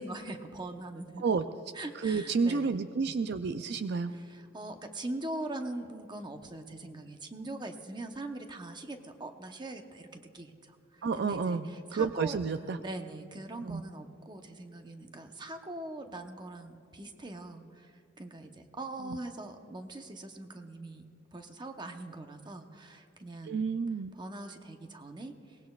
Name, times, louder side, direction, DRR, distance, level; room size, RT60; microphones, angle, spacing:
voice 1, 0.0-1.2 1.7-2.8 4.1-12.4 12.8-21.1 21.3-23.6 24.1-25.6, right 2 dB, 25° right, 5 dB, 0.9 m, -42 dB
voice 2, 2.0-4.1 11.0-11.7 11.9-12.8 13.6-13.8 19.1-19.2 23.5-24.1, right 5 dB, 60° right, 10 dB, 0.4 m, -30 dB
23.0 x 19.0 x 2.4 m, 2.8 s
head